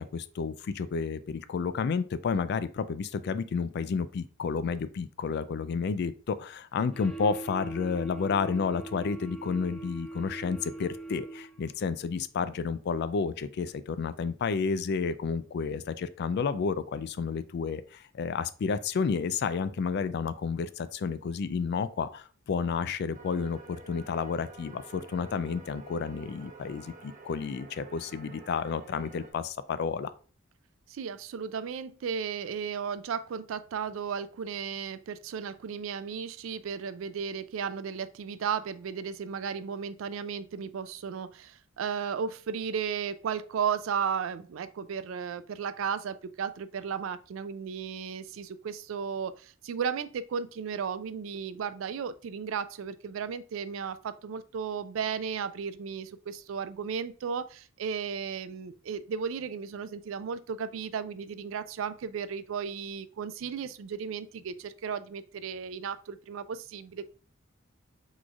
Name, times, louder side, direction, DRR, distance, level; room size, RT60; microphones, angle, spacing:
voice 1, 0.0-30.1, left 5 dB, 55° left, 0.3 m, -31 dB
sound 1, 6.9-11.8, right 3 dB, 5° left, 0.5 m, -42 dB
sound 2, 23.1-29.3, right 3 dB, 40° right, 0.9 m, -50 dB
voice 2, 30.9-67.1, right 6 dB, 70° right, 0.3 m, -35 dB
6.1 x 3.1 x 2.4 m
head